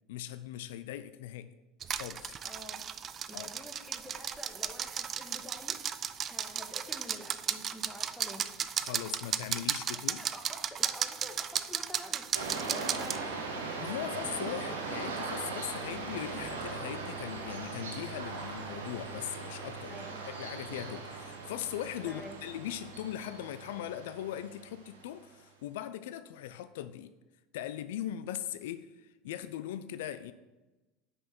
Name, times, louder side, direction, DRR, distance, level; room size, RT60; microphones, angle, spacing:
voice 1, 0.1-1.5 1.9-2.4 3.3-3.5 8.8-10.2 13.8-20.0 20.4-27.1 27.5-30.3, left 11 dB, 75° left, 13 dB, 0.3 m, -40 dB
sound 1, 1.8-13.2, right 8 dB, 40° right, 0.4 m, -35 dB
voice 2, 2.4-2.9 3.3-5.8 6.2-8.5 9.9-13.4 19.9-20.3 22.1-22.4, equal, ahead, 2 dB, 1.4 m, -49 dB
sound 2, 12.3-25.2, right 4 dB, 90° right, 1.2 m, -39 dB
5.6 x 5.5 x 5.9 m, 1.1 s
hypercardioid pair, 85°, 0 cm